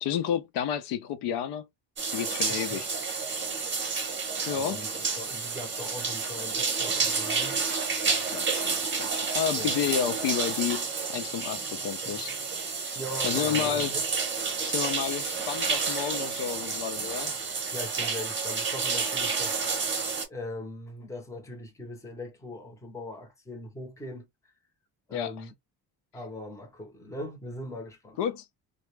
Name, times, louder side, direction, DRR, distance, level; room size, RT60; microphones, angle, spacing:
voice 1, 0.0-1.7 2.1-2.9 4.5-4.8 8.0-12.3 12.8-13.0 13.2-13.9 14.6-17.3 25.1-25.3 28.2-28.4, left 9 dB, 80° left, 0.6 m, -31 dB
sound 1, 2.0-20.2, right 5 dB, 25° right, 0.9 m, -30 dB
voice 2, 2.5-2.8 4.5-4.9 5.2-7.8 9.6-9.8 13.0-14.0 17.7-19.6 20.3-24.3 25.1-25.5 26.1-28.2, left 1 dB, 5° left, 0.6 m, -40 dB
2.2 x 2.0 x 3.1 m
cardioid pair, 150°, 42 cm